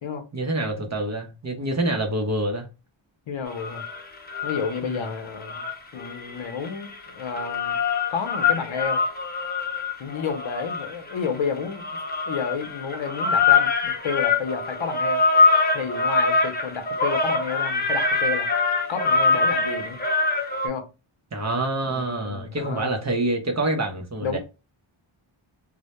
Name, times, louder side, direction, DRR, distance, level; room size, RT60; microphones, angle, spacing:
voice 1, 0.3-2.7 4.8-5.0 21.3-24.4, right 2 dB, 35° right, 0.6 m, -26 dB
voice 2, 3.3-3.8 4.4-5.6 5.9-7.8 8.1-9.0 10.0-11.8 12.3-15.2 15.7-18.5 18.9-20.0 20.6-20.9 21.9-22.9 24.2-24.4, left 6 dB, 70° left, 0.6 m, -31 dB
sound 1, 3.5-5.0 5.4-20.7, left 4 dB, 20° left, 0.4 m, -24 dB
2.1 x 2.1 x 2.8 m
wide cardioid pair, 90°, 49 cm